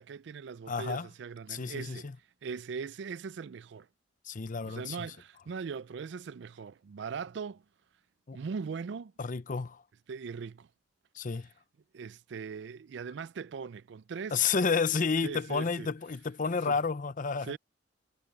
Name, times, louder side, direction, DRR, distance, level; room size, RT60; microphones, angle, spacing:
voice 1, 0.0-2.1 2.4-3.9 4.6-7.6 8.3-9.1 10.1-10.7 11.9-14.4 15.2-15.9 16.7-16.8 17.4-17.6, right 5 dB, 70° right, 0.4 m, -40 dB
voice 2, 0.7-1.1 1.5-2.1 4.3-5.1 8.3-8.4 9.2-9.8 11.1-11.5 14.3-17.5, left 5 dB, 45° left, 0.7 m, -31 dB
head